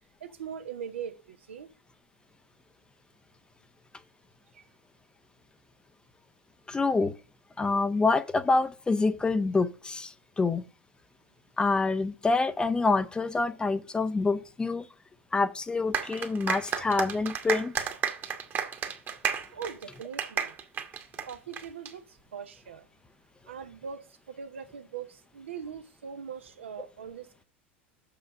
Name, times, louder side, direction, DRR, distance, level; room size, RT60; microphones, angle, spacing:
voice 1, 0.2-1.7 4.5-4.7 19.5-20.5 21.2-22.9 23.5-27.4, right 7 dB, 70° right, 0.9 m, -41 dB
voice 2, 6.7-7.1 7.6-10.6 11.6-14.9 15.3-17.9, left 3 dB, 15° left, 0.6 m, -26 dB
sound 1, 15.9-21.9, right 7 dB, 30° right, 1.3 m, -32 dB
6.6 x 5.7 x 5.2 m
figure-of-eight pair, 85°, 7 cm